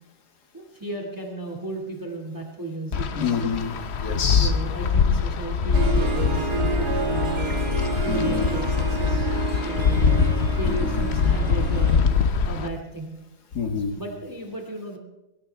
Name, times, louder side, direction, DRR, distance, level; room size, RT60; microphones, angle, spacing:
voice 1, 0.5-3.5 4.4-7.6 8.0-10.0 10.5-12.1 12.4-13.1 13.9-15.0, right 2 dB, 10° right, 2 dB, 2.4 m, -34 dB
Wind, 2.9-12.7, left 6 dB, 50° left, 0.9 m, -23 dB
voice 2, 3.2-4.5 6.4-6.7 8.1-8.5 10.6-11.0 13.5-14.0, left 5 dB, 85° left, 6 dB, 2.2 m, -27 dB
Harp, 5.7-12.0, right 5 dB, 75° right, 2.2 m, -30 dB
23.0 x 17.5 x 3.5 m, 1.0 s
omnidirectional pair, 1.7 m